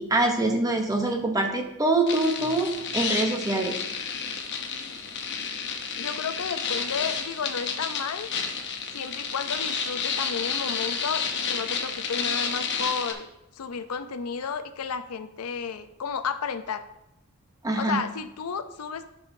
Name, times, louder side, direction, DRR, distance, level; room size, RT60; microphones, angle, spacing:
voice 1, 0.0-3.8 17.6-18.0, right 2 dB, 15° right, 3 dB, 0.8 m, -24 dB
sound 1, 2.1-13.1, left 6 dB, 55° left, 0.8 m, -31 dB
voice 2, 6.0-8.3 8.9-13.3 13.5-16.8 17.8-19.1, left 6 dB, 85° left, 10 dB, 0.5 m, -32 dB
11.0 x 5.6 x 2.7 m, 0.89 s
head